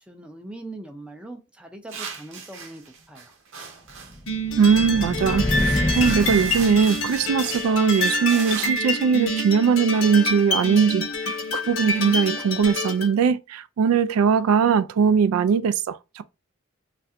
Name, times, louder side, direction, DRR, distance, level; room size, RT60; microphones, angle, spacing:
voice 1, 0.0-3.3, right 2 dB, 5° right, 0.5 m, -41 dB
sound 1, 1.9-4.2 4.9-5.0 5.2-8.7, right 5 dB, 65° right, 0.7 m, -37 dB
sound 2, 4.1-7.5, left 1 dB, 35° left, 0.7 m, -27 dB
sound 3, 4.3-13.1, left 1 dB, 70° left, 1.0 m, -27 dB
voice 2, 4.6-16.2, right 6 dB, 85° right, 0.3 m, -20 dB
3.2 x 2.5 x 2.7 m
head